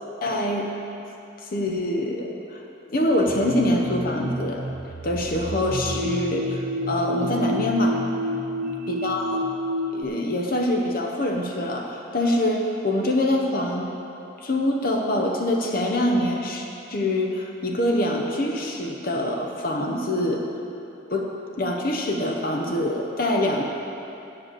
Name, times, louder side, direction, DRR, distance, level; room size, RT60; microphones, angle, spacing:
voice 1, 0.2-0.7 1.4-4.7 5.0-8.0 8.9-9.5 9.9-13.9 14.4-20.4 21.1-21.3 21.6-23.6, left 1 dB, 45° left, 1 dB, 0.8 m, -25 dB
sound 1, 3.3-10.0, equal, 45° right, 0.5 m, -30 dB
8.1 x 7.7 x 7.4 m, 2.8 s
head